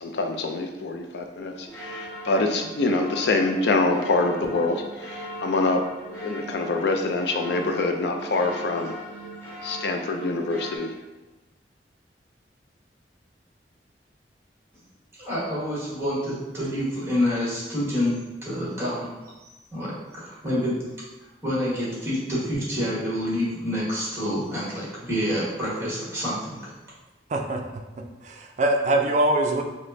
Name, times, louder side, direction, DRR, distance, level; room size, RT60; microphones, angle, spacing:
voice 1, 0.0-5.8 6.1-8.9 9.6-10.9, left 3 dB, 65° left, 4 dB, 0.4 m, -25 dB
sound 1, 1.7-10.8, right 1 dB, 10° left, 1.1 m, -39 dB
voice 2, 15.2-19.2 19.4-20.8 21.4-26.7, equal, 15° right, -8 dB, 1.3 m, -28 dB
voice 3, 27.3-27.6 28.2-29.6, right 1 dB, 40° right, 3 dB, 0.4 m, -23 dB
4.9 x 2.1 x 2.6 m, 1.1 s
head